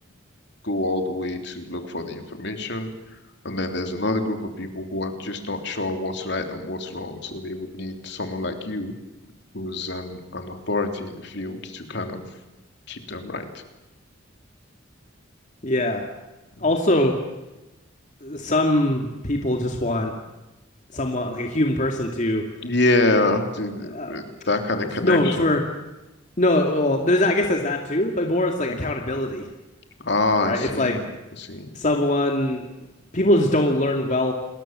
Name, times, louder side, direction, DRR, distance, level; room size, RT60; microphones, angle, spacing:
voice 1, 0.6-2.9 3.4-8.9 9.5-12.2 12.9-13.5 16.6-16.7 22.6-25.5 28.7-28.8 30.0-31.0 31.4-31.7, left 2 dB, 60° left, 5 dB, 3.4 m, -26 dB
voice 2, 15.6-16.1 16.6-17.2 18.2-20.1 20.9-22.5 23.8-24.1 25.0-25.6 26.4-29.5 30.4-31.0 31.7-32.6 33.1-34.3, left 1 dB, 40° left, 2 dB, 2.4 m, -22 dB
29.5 x 21.5 x 7.6 m, 1.0 s
head